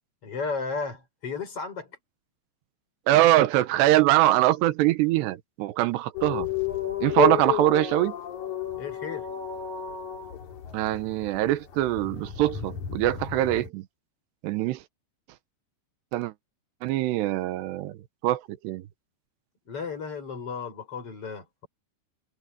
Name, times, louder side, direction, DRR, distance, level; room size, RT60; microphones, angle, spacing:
voice 1, 0.2-1.9 8.8-9.3 19.7-21.7, left 5 dB, 35° left, 5.9 m, -34 dB
voice 2, 3.1-6.5 7.0-8.2 10.7-13.8 14.4-14.8 16.1-16.3 16.8-18.0 18.2-18.8, right 15 dB, 90° right, 3.1 m, -23 dB
sound 1, 6.1-13.7, left 11 dB, 50° left, 3.4 m, -32 dB
open air
omnidirectional pair, 4.8 m